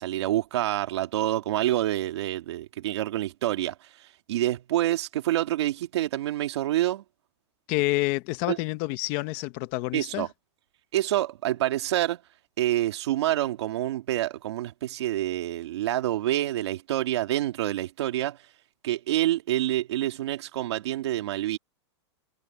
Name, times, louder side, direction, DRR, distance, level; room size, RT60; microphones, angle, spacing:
voice 1, 0.0-7.0 8.5-8.6 9.9-10.3 10.9-12.2 12.6-18.4 18.8-21.6, right 14 dB, 65° right, 2.3 m, -27 dB
voice 2, 7.7-10.3, left 20 dB, 30° left, 0.9 m, -28 dB
supercardioid pair, 170°, 15 cm